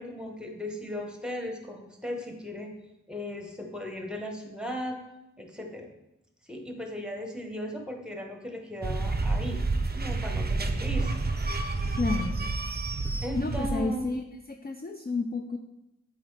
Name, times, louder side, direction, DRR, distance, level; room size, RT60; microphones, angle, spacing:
voice 1, 0.0-2.7 3.1-5.0 5.4-5.9 6.4-9.6 9.9-11.1 13.2-14.1, left 1 dB, 5° right, 3 dB, 1.0 m, -37 dB
sound 1, 8.8-14.1, right 3 dB, 35° right, 0.5 m, -29 dB
voice 2, 12.0-12.4 13.4-14.2 14.5-15.6, left 3 dB, 30° left, 4 dB, 0.4 m, -30 dB
7.8 x 4.1 x 3.2 m, 0.92 s
wide cardioid pair, 45°, 30 cm